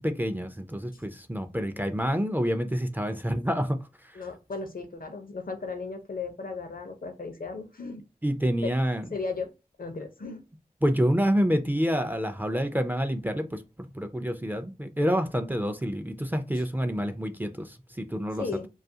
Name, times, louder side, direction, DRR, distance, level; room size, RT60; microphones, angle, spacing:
voice 1, 0.0-4.2 8.2-9.1 10.8-18.5, equal, 10° right, 0.4 m, -28 dB
voice 2, 4.1-8.0 8.6-8.7 9.1-9.5 9.8-10.4 18.4-18.7, left 4 dB, 65° left, 0.6 m, -35 dB
2.4 x 2.3 x 2.7 m
wide cardioid pair, 40°, 16 cm